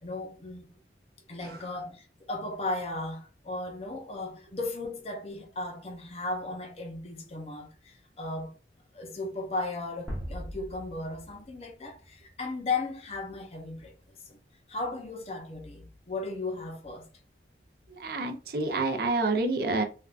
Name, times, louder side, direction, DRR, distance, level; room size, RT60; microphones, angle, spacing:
voice 1, 0.0-0.7 1.3-8.5 8.9-13.9 14.3-14.4 14.7-17.1, left 2 dB, 35° left, 0.6 m, -36 dB
sound 1, 10.1-13.0, equal, 5° right, 1.0 m, -41 dB
voice 2, 17.9-19.8, right 3 dB, 60° right, 0.5 m, -28 dB
3.4 x 2.4 x 2.4 m
head